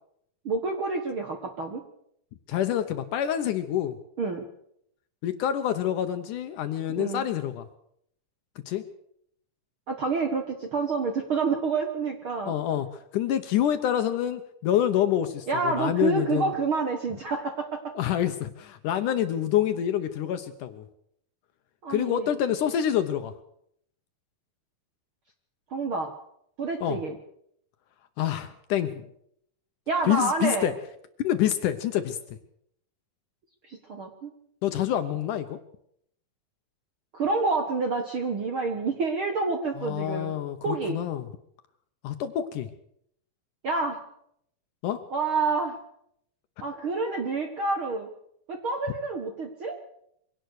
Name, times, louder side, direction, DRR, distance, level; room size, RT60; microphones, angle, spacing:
voice 1, 0.4-1.8 4.2-4.5 7.0-7.2 9.9-12.5 15.5-17.9 21.8-22.3 25.7-26.1 26.6-27.1 29.9-30.7 33.6-34.3 37.1-40.3 40.6-41.0 43.6-44.0 45.1-45.8 46.6-48.1 48.5-49.8, right 4 dB, 55° right, 5 dB, 1.5 m, -28 dB
voice 2, 2.5-4.0 5.2-7.7 8.7-8.8 12.5-16.5 18.0-20.8 21.9-23.3 26.8-27.0 28.2-29.1 30.1-30.7 31.2-32.4 34.6-35.6 39.8-41.3 42.0-42.7 44.8-45.0, left 11 dB, 70° left, 9 dB, 2.1 m, -27 dB
23.5 x 17.5 x 6.4 m, 0.72 s
omnidirectional pair, 4.3 m